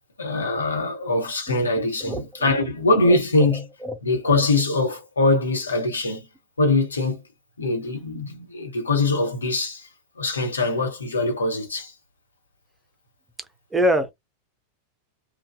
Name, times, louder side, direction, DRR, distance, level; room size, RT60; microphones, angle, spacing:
voice 1, 0.2-3.6 4.0-6.2 6.6-7.2 7.6-9.9 10.2-11.9, left 2 dB, 75° left, 1.1 m, -22 dB
voice 2, 2.0-2.6 3.0-3.2 3.5-4.0 13.7-14.1, equal, 10° right, 0.6 m, -25 dB
2.6 x 2.2 x 2.3 m
figure-of-eight pair, 90°, 0 cm